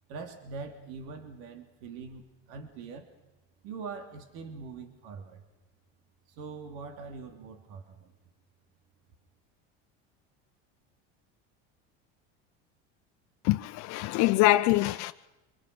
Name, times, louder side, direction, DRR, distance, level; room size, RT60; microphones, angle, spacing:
voice 1, 0.1-3.1 3.6-5.4 6.3-8.1, right 5 dB, 70° right, 3.0 m, -43 dB
voice 2, 13.4-15.1, left 17 dB, 60° left, 0.7 m, -24 dB
25.5 x 23.0 x 6.2 m
supercardioid pair, 110°, 32 cm